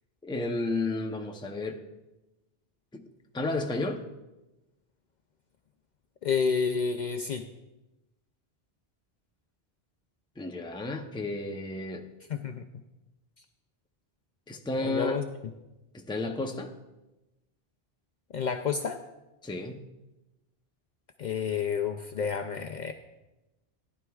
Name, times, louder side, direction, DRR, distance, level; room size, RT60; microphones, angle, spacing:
voice 1, 0.2-1.8 2.9-3.0 3.3-4.0 10.4-12.1 14.5-15.2 15.9-16.7 19.4-19.8, left 2 dB, 5° left, 4 dB, 0.5 m, -32 dB
voice 2, 6.2-7.4 12.3-12.7 14.8-15.3 18.3-19.0 21.2-22.9, left 6 dB, 55° left, 6 dB, 0.6 m, -29 dB
14.5 x 10.5 x 2.3 m, 1.0 s
omnidirectional pair, 1.0 m